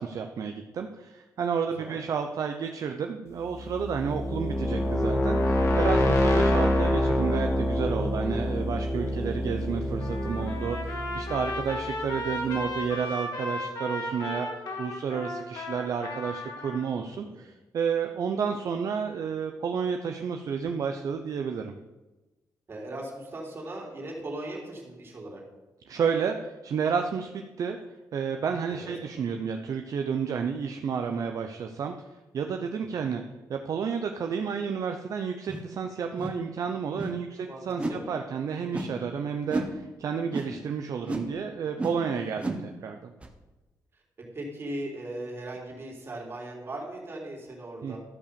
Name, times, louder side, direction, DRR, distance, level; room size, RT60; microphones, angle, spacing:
voice 1, 0.0-14.5 14.8-21.8 25.9-27.8 28.1-31.9 32.3-33.2 33.5-43.1 47.8-48.0, right 6 dB, 55° right, 5 dB, 0.7 m, -31 dB
voice 2, 1.7-2.0 17.0-17.4 22.7-25.4 28.7-28.9 32.8-33.2 37.4-38.1 43.9-44.0 44.3-48.0, right 1 dB, 35° right, -2 dB, 3.3 m, -39 dB
sound 1, 3.5-12.3, left 1 dB, 45° left, 1.7 m, -26 dB
Trumpet, 10.0-16.8, left 1 dB, 70° left, 2.5 m, -35 dB
sound 2, 35.5-35.7 36.2-36.4 36.9-37.2 37.8-38.1 38.7-39.0 39.5-39.7 40.3-40.6 41.0-41.3 41.8-42.0 42.4-42.7 43.2-43.3, right 2 dB, 15° right, 1.1 m, -33 dB
13.0 x 5.6 x 6.9 m, 1.1 s
wide cardioid pair, 140°, 7 cm